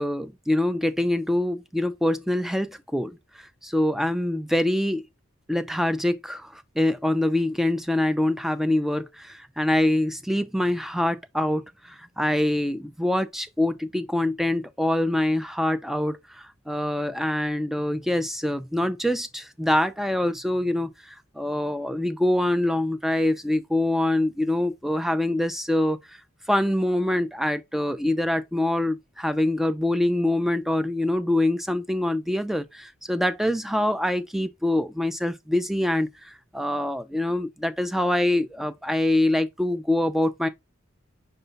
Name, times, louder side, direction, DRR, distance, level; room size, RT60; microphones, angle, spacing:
voice 1, 0.0-5.0 5.5-26.2 26.5-40.5, left 1 dB, ahead, 0.4 m, -25 dB
5.5 x 2.3 x 3.9 m
head